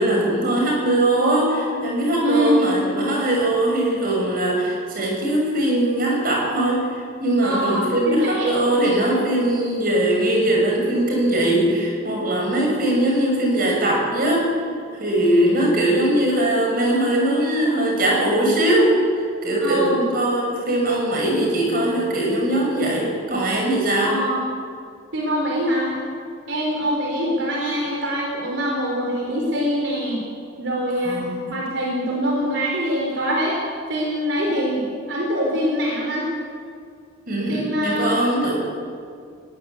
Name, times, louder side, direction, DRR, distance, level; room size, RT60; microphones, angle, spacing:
voice 1, 0.0-14.4 15.0-18.9 19.4-24.2 31.0-31.5 37.3-38.5, right 1 dB, 45° right, -1 dB, 6.5 m, -21 dB
voice 2, 2.2-2.6 7.4-8.5 19.6-20.0 24.0-24.4 25.1-26.0 26.5-30.2 30.6-31.2 31.5-33.6 33.9-36.2 37.5-38.1, equal, 70° right, -2 dB, 4.1 m, -23 dB
20.5 x 17.5 x 8.4 m, 2.2 s
head